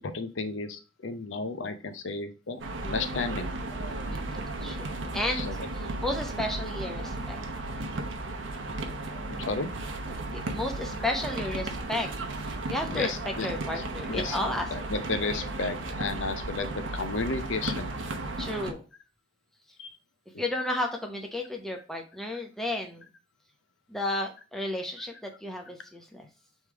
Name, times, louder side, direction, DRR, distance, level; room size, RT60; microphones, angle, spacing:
voice 1, 0.0-3.5 5.3-5.6 9.3-9.7 12.9-13.5 13.8-17.9 19.8-20.0, left 3 dB, 85° left, 8 dB, 0.6 m, -33 dB
sound 1, 2.6-18.7, right 2 dB, 90° right, 0.8 m, -35 dB
voice 2, 4.1-4.9 5.1-5.5 6.0-7.4 10.3-12.1 12.4-13.1 13.4-14.7 18.4-18.8 20.4-23.1 23.9-26.3, left 1 dB, ahead, 1 dB, 0.7 m, -33 dB
3.6 x 3.2 x 4.5 m, 0.33 s
head